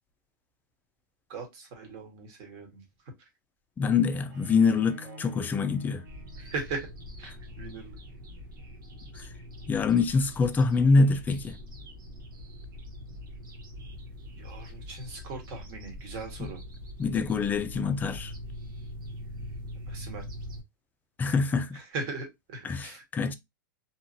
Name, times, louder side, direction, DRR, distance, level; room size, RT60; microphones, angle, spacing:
voice 1, 1.3-2.8 5.0-5.2 6.4-6.9 7.2-8.0 14.4-16.6 19.9-20.3 21.7-23.0, right 3 dB, 50° right, 1.4 m, -39 dB
voice 2, 3.8-6.0 9.2-9.3 9.7-11.6 16.4-16.5 17.0-18.3 21.2-21.8 22.6-23.3, left 4 dB, 15° left, 0.3 m, -25 dB
Bowed string instrument, 4.3-7.3, right 1 dB, 65° right, 1.7 m, -48 dB
sound 1, 6.1-20.6, left 1 dB, 85° right, 1.1 m, -43 dB
2.8 x 2.5 x 2.6 m
hypercardioid pair, 115°, 11 cm